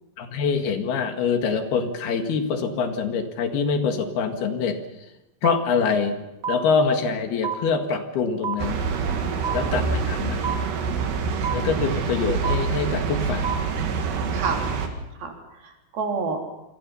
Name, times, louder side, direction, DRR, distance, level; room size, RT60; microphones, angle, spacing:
voice 1, 0.2-4.8 5.4-6.2 6.5-8.8 9.5-10.5 11.5-13.5, left 5 dB, 70° left, 6 dB, 3.9 m, -24 dB
sound 1, 5.4-5.5 6.4-6.5 7.4-7.5 8.4-8.5 9.4-9.5 10.4-10.5 11.4-11.5 12.4-12.5 13.4-13.5 14.4-14.5, right 8 dB, 35° right, 1.6 m, -26 dB
sound 2, 8.6-14.9, right 5 dB, 85° right, 4.4 m, -26 dB
voice 2, 9.1-9.6 14.3-14.6 15.2-16.4, right 4 dB, 65° right, 3 dB, 5.0 m, -30 dB
28.0 x 24.0 x 5.7 m, 0.97 s
omnidirectional pair, 4.7 m